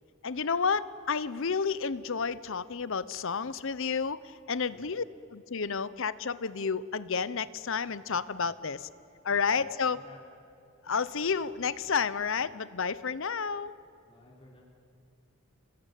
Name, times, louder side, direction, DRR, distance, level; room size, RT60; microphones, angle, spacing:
voice 1, 0.2-5.0 5.3-8.9 9.2-10.0 10.8-13.7, left 5 dB, 65° left, 16 dB, 0.8 m, -31 dB
voice 2, 4.7-5.0 9.9-10.2 14.0-14.6, left 1 dB, 25° left, -4 dB, 3.9 m, -54 dB
29.5 x 21.0 x 9.2 m, 2.7 s
head